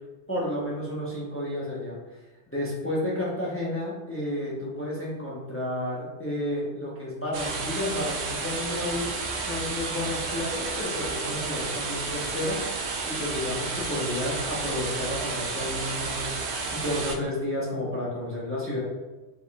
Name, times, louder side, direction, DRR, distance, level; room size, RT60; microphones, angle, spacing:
voice 1, 0.3-2.0 2.5-9.1 9.5-12.6 13.1-18.8, left 1 dB, 15° left, -6 dB, 0.9 m, -31 dB
sound 1, 7.3-17.2, right 4 dB, 80° right, 0.9 m, -31 dB
5.1 x 4.3 x 2.4 m, 1.2 s
omnidirectional pair, 1.1 m